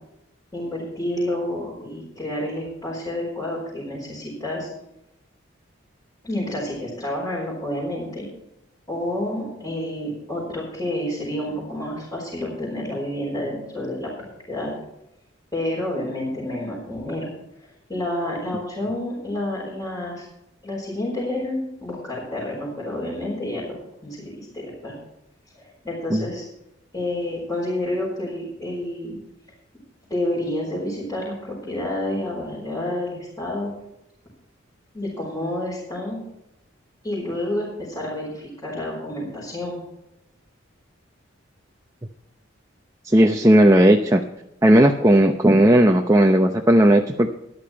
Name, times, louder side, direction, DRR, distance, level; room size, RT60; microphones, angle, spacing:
voice 1, 0.5-4.7 6.2-8.3 8.9-14.1 14.5-14.7 15.5-17.3 17.9-20.3 20.6-23.8 24.0-24.9 25.5-26.5 26.9-29.2 30.1-33.7 34.9-36.2 37.0-39.8, left 1 dB, 15° left, -8 dB, 4.7 m, -29 dB
voice 2, 43.0-44.2 44.6-47.3, right 1 dB, 15° right, 3 dB, 0.7 m, -15 dB
13.5 x 10.5 x 4.5 m, 0.86 s
head